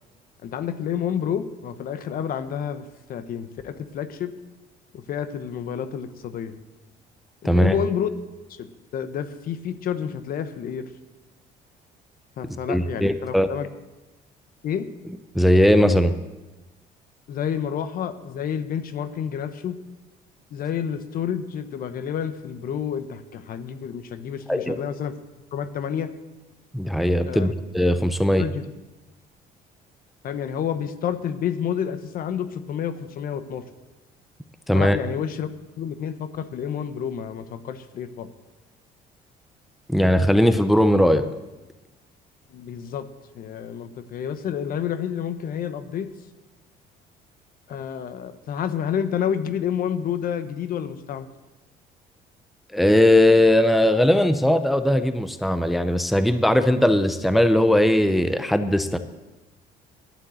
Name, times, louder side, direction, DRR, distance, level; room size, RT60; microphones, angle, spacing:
voice 1, 0.4-4.3 4.9-6.5 7.4-8.1 8.6-10.9 12.4-13.7 14.6-14.9 17.3-19.8 20.5-25.1 25.5-26.1 27.3-27.5 28.4-28.6 30.2-33.6 34.7-35.5 35.8-38.3 42.5-43.1 43.3-46.1 47.7-51.3, left 8 dB, 60° left, 11 dB, 1.0 m, -29 dB
voice 2, 7.4-7.8 12.5-13.5 15.3-16.1 24.5-24.8 26.7-28.4 34.7-35.0 39.9-41.2 52.7-59.0, left 1 dB, ahead, 10 dB, 0.6 m, -19 dB
11.5 x 7.9 x 7.7 m, 1.1 s
cardioid pair, 110°, 17 cm